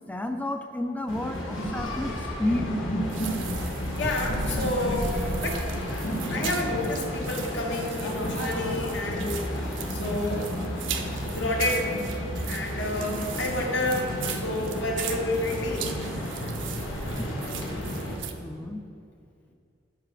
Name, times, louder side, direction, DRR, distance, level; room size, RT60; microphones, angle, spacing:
voice 1, 0.1-2.1 2.4-2.7 18.4-18.8, left 1 dB, 10° left, 6 dB, 0.5 m, -30 dB
sound 1, 1.1-18.2, equal, 90° left, 1.7 m, -32 dB
sound 2, 3.1-18.3, right 9 dB, 70° right, 0.7 m, -40 dB
voice 2, 4.0-5.6 6.3-10.5 11.3-11.9 12.5-15.9, left 2 dB, 65° left, 0 dB, 1.5 m, -30 dB
12.5 x 5.6 x 5.0 m, 2.5 s
head